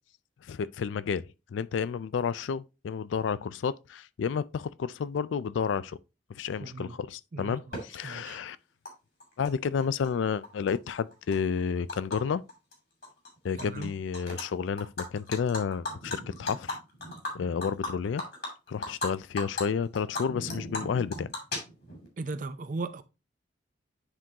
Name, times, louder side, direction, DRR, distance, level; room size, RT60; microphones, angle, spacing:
voice 1, 0.4-6.0 6.4-8.6 9.4-12.4 13.4-16.8 17.3-18.2 18.7-21.3, left 6 dB, 90° left, 0.4 m, -31 dB
voice 2, 6.6-7.0 7.3-8.4 13.6-13.9 22.2-23.0, right 3 dB, 45° right, 0.5 m, -37 dB
Animal, 7.7-7.8 8.8-8.9 9.2-10.1 10.4-12.2 12.5-12.7 13.0-13.8 14.1-14.4 14.8-19.1 19.4-19.6 19.9-22.1, left 2 dB, 60° left, 2.6 m, -36 dB
9.9 x 3.7 x 2.8 m
head